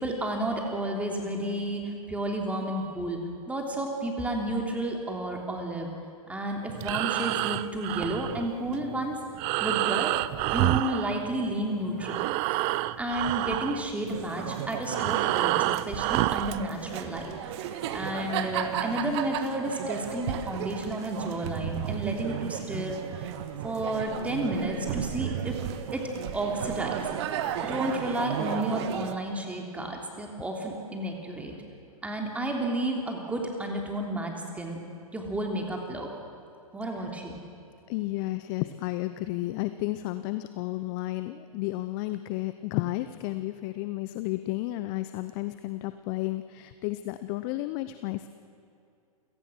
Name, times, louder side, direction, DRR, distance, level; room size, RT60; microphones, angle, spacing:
voice 1, 0.0-5.9 6.3-9.2 9.6-10.1 10.5-12.2 12.6-12.7 13.0-15.5 15.8-17.3 17.9-23.3 23.6-25.6 25.9-27.1 27.6-31.5 32.0-34.8 35.1-36.1 36.7-37.4, right 1 dB, 5° right, 1 dB, 3.2 m, -31 dB
Breathing, 6.7-11.7 11.9-16.6, right 17 dB, 30° right, 0.5 m, -29 dB
sound 1, 14.1-29.2, right 10 dB, 45° right, 1.6 m, -34 dB
voice 2, 37.9-48.3, left 17 dB, 35° left, 11 dB, 0.8 m, -32 dB
28.5 x 17.0 x 6.3 m, 2.6 s
figure-of-eight pair, 115°, 19 cm